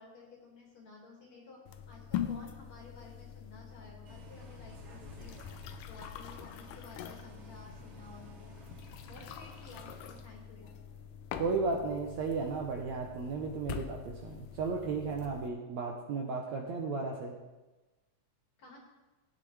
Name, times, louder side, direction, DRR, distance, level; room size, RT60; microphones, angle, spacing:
voice 1, 0.0-1.6 1.9-5.4 5.9-8.6 9.1-10.7 18.6-18.8, left 3 dB, 55° left, -2 dB, 3.3 m, -53 dB
sound 1, 1.7-15.5, left 10 dB, 80° left, 2.2 m, -44 dB
Bus, 4.1-10.2, right 3 dB, 45° right, 2.9 m, -54 dB
voice 2, 11.4-17.3, right 4 dB, 70° right, 1 dB, 1.8 m, -34 dB
16.0 x 9.0 x 3.3 m, 1.1 s
omnidirectional pair, 4.0 m